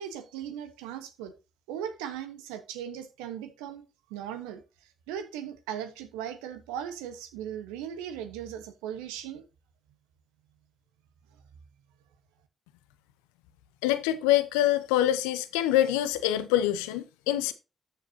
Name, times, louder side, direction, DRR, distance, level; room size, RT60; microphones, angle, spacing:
voice 1, 0.0-1.3 1.7-4.6 5.1-9.4, right 9 dB, 85° right, 1.2 m, -38 dB
voice 2, 13.8-17.5, left 13 dB, 85° left, 0.8 m, -25 dB
13.0 x 7.1 x 2.8 m
hypercardioid pair, 40°, 0 cm